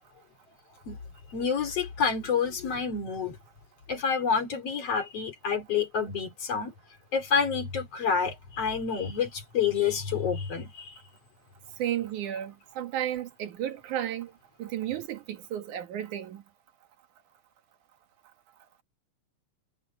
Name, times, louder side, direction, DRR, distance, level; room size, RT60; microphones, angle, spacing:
voice 1, 1.3-3.4 3.9-6.7 7.1-11.0, left 6 dB, 55° left, 3.7 m, -28 dB
voice 2, 11.8-14.3 14.6-16.4, right 11 dB, 85° right, 3.1 m, -33 dB
omnidirectional pair, 3.4 m